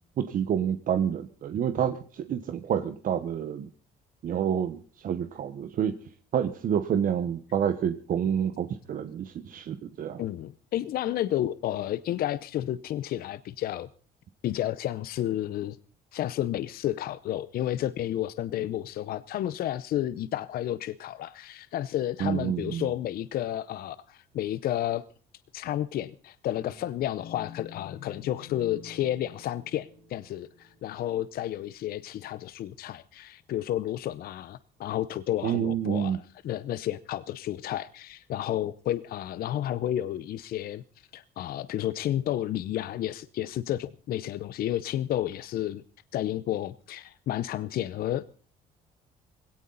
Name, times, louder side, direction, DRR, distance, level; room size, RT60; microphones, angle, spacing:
voice 1, 0.2-3.7 4.2-5.9 6.3-10.2 22.2-22.8 35.4-36.2, right 8 dB, 55° right, 1.2 m, -28 dB
voice 2, 10.2-13.9 14.4-15.8 16.1-25.0 25.5-45.8 46.1-48.2, left 12 dB, 65° left, 0.7 m, -31 dB
sound 1, 26.5-31.6, left 7 dB, 85° left, 7.2 m, -48 dB
19.5 x 17.5 x 4.0 m
cardioid pair, 110°, 17 cm